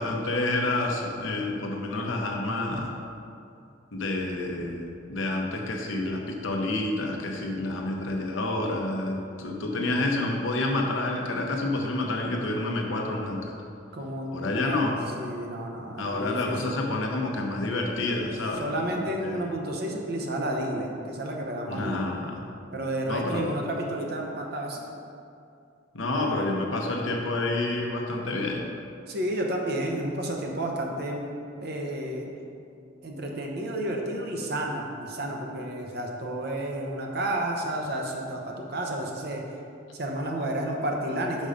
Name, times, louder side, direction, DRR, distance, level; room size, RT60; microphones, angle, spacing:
voice 1, 0.0-2.9 3.9-13.5 14.3-15.0 16.0-18.7 19.2-19.4 21.7-22.4 23.1-23.6 25.9-28.7, left 2 dB, 75° left, 1 dB, 0.9 m, -29 dB
voice 2, 13.9-16.6 18.6-22.1 22.7-24.9 26.1-26.5 29.1-31.3 31.6-32.3 33.0-39.4 39.9-41.5, right 1 dB, 55° right, 0 dB, 0.9 m, -31 dB
5.4 x 5.3 x 5.0 m, 2.5 s
head